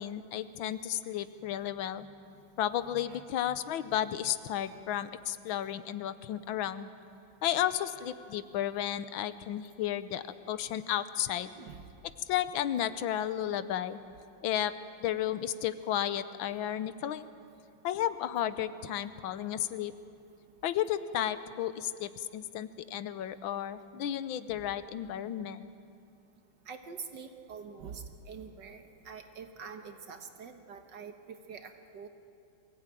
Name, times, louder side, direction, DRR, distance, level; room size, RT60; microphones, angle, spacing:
voice 1, 0.0-2.1 2.6-6.9 7.4-11.5 12.3-14.0 14.4-14.7 15.0-17.3 17.8-19.9 20.6-25.7, left 11 dB, 80° left, 13 dB, 1.5 m, -33 dB
voice 2, 2.9-3.9 11.6-11.9 24.5-24.6 26.7-32.1, right 6 dB, 65° right, 7 dB, 1.8 m, -46 dB
23.0 x 16.0 x 9.0 m, 2.5 s
omnidirectional pair, 2.2 m